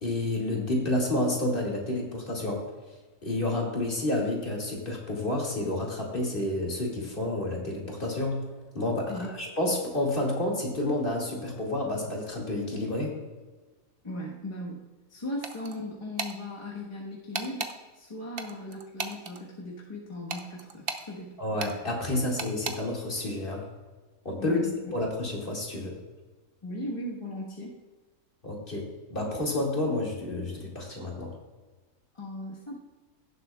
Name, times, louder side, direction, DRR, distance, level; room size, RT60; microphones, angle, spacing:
voice 1, 0.0-2.6 3.2-8.4 8.7-9.1 9.4-13.2 21.4-23.6 24.2-24.6 24.9-26.0 28.4-31.3, left 1 dB, 40° left, -2 dB, 2.3 m, -30 dB
voice 2, 14.0-14.8 15.1-17.7 17.9-21.4 24.4-24.8 26.6-27.7 32.1-32.7, left 1 dB, 20° left, -4 dB, 1.2 m, -37 dB
sound 1, 15.4-15.8 16.2-16.4 17.3-17.7 18.4-19.4 20.3-21.1 21.6-21.8 22.4-22.8, right 5 dB, 50° right, 0.8 m, -34 dB
17.0 x 7.5 x 2.3 m, 1.3 s
omnidirectional pair, 1.5 m